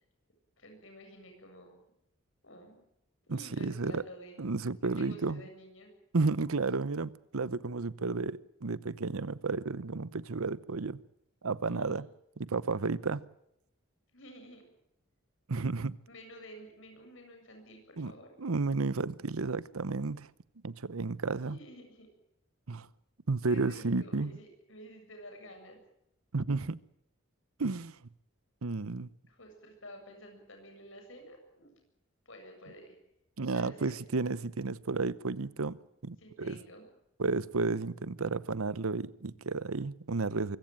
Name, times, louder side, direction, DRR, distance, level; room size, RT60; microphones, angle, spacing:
voice 1, 0.6-1.8 2.4-2.8 3.3-4.4 4.8-5.9 11.6-12.0 14.1-14.7 16.1-18.3 21.5-22.1 23.5-25.8 29.3-31.7 32.3-33.0 33.5-33.9 36.2-36.9, equal, 65° left, 7.6 m, -51 dB
voice 2, 3.3-4.0 4.4-5.4 6.1-11.0 11.4-12.1 12.4-13.2 15.5-16.0 18.0-18.1 18.4-20.3 20.6-21.6 22.7-22.9 23.3-24.3 26.3-26.8 27.6-28.0 28.6-29.1 33.4-35.8 36.0-36.6 37.2-40.6, right 3 dB, 85° right, 0.9 m, -32 dB
24.5 x 16.5 x 9.1 m
head